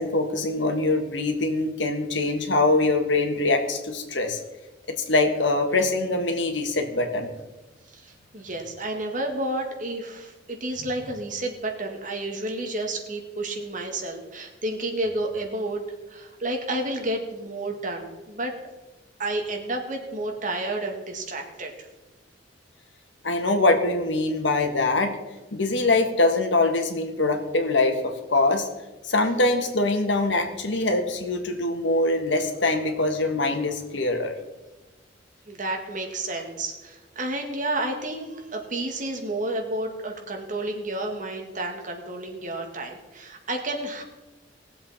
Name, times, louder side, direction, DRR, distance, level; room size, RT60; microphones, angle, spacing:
voice 1, 0.0-4.4 5.1-7.3 23.2-25.1 25.5-28.7 29.0-34.3, left 2 dB, 85° left, 5 dB, 1.7 m, -23 dB
voice 2, 7.9-18.5 19.2-21.9 35.5-44.0, right 2 dB, 45° right, 2 dB, 2.0 m, -31 dB
19.5 x 7.5 x 4.3 m, 1.1 s
head